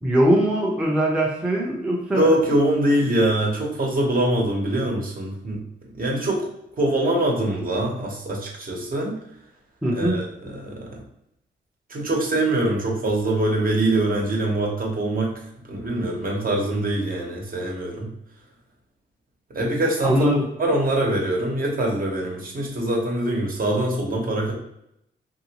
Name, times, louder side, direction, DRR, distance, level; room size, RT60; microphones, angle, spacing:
voice 1, 0.0-2.3 9.8-10.2 20.0-20.4, right 1 dB, 5° right, -3 dB, 0.7 m, -21 dB
voice 2, 2.1-5.6 5.9-6.5 6.8-9.2 9.9-10.9 11.9-15.3 15.7-18.1 19.5-20.3 20.6-24.5, right 1 dB, 45° right, -1 dB, 1.1 m, -23 dB
3.0 x 2.7 x 2.9 m, 0.77 s
cardioid pair, 85°, 20 cm